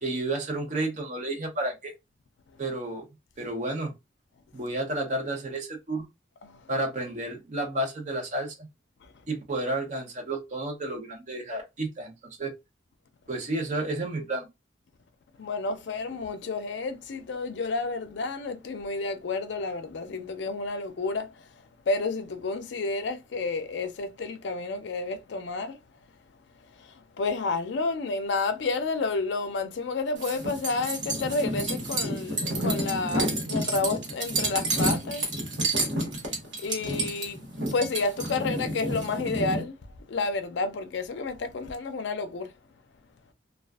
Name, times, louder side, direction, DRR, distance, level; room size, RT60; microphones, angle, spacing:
voice 1, 0.0-1.9 2.6-3.1 3.4-3.9 4.5-6.1 6.7-8.7 9.3-12.1 12.4-12.5 13.3-14.5, right 2 dB, 40° right, 0.6 m, -31 dB
voice 2, 15.4-21.3 21.9-25.8 27.2-35.2 36.6-39.7 40.1-42.5, left 3 dB, 70° left, 0.4 m, -30 dB
sound 1, 30.2-39.6, right 1 dB, 75° right, 1.0 m, -30 dB
2.4 x 2.3 x 2.2 m
head